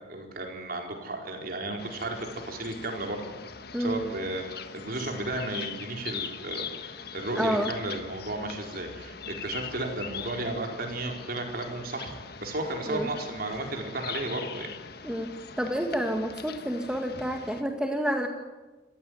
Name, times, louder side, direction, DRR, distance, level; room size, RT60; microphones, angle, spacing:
voice 1, 0.1-3.2 3.8-4.4 4.7-14.7, right 2 dB, 55° right, 2 dB, 4.6 m, -34 dB
sound 1, 1.8-17.6, left 7 dB, 60° left, 1.5 m, -42 dB
voice 2, 7.3-7.7 12.9-13.1 15.0-18.3, equal, 5° right, 3 dB, 1.7 m, -29 dB
27.5 x 15.5 x 9.6 m, 1.1 s
head